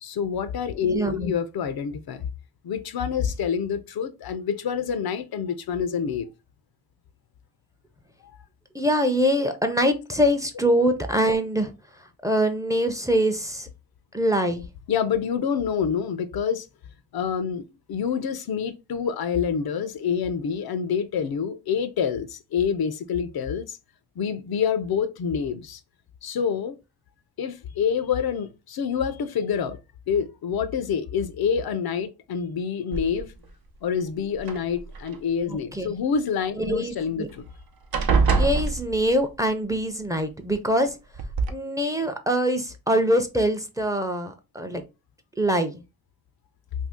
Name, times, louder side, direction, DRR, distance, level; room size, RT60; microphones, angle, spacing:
voice 1, 0.0-2.3 2.6-6.3 14.9-16.7 17.1-17.6 17.9-23.8 24.2-25.8 26.2-26.8 27.4-29.8 30.1-33.3 33.8-37.5, left 7 dB, 80° left, 0.5 m, -27 dB
voice 2, 0.9-1.3 8.7-13.7 14.1-14.7 35.5-35.9 36.6-37.3 38.4-41.0 41.5-44.8 45.4-45.8, equal, 10° right, 0.4 m, -24 dB
sound 1, 32.9-33.5 34.3-35.2 37.0-37.1 37.4-37.6 37.9-39.4 40.5-40.6 41.1-41.5, right 4 dB, 85° right, 0.7 m, -24 dB
2.7 x 2.7 x 3.5 m
wide cardioid pair, 95°, 36 cm